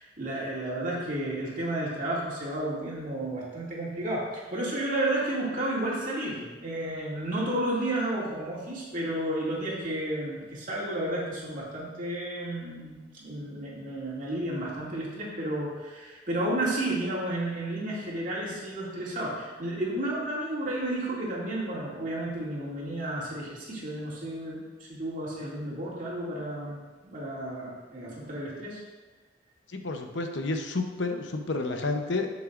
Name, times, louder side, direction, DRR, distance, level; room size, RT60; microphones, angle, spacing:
voice 1, 0.0-26.8 27.0-28.8, right 1 dB, 45° right, -6 dB, 2.4 m, -32 dB
voice 2, 29.7-32.3, left 3 dB, 90° left, 5 dB, 0.9 m, -30 dB
12.0 x 6.3 x 2.5 m, 1.3 s
head